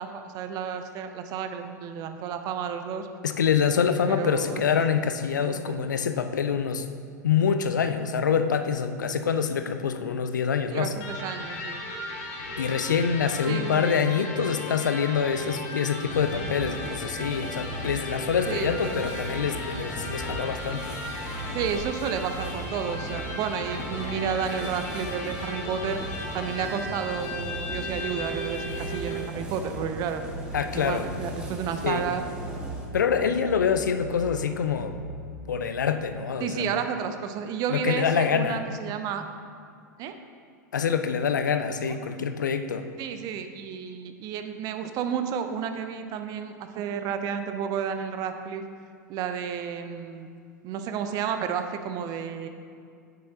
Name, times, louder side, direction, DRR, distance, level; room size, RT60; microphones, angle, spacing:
voice 1, 0.0-3.1 4.1-4.6 5.4-5.8 10.7-11.8 13.5-14.0 18.5-19.0 21.5-26.0 26.3-30.2 30.7-32.2 33.1-33.3 36.4-39.2 40.0-40.1 43.0-48.6 49.1-50.3 50.6-52.5, right 7 dB, 40° right, 8 dB, 0.6 m, -31 dB
voice 2, 3.2-6.9 7.2-10.9 12.6-20.9 30.5-31.1 31.8-32.0 32.9-34.9 35.5-36.6 37.7-38.6 40.7-42.9, left 7 dB, 80° left, 9 dB, 0.4 m, -26 dB
Electric guitar, 11.0-29.3, left 1 dB, 55° left, 1.4 m, -37 dB
sound 1, 16.0-35.8, right 2 dB, 85° right, 1.8 m, -41 dB
sound 2, 16.1-32.8, right 1 dB, 10° right, 1.5 m, -40 dB
8.9 x 6.5 x 2.8 m, 2.2 s
figure-of-eight pair, 90°, 10 cm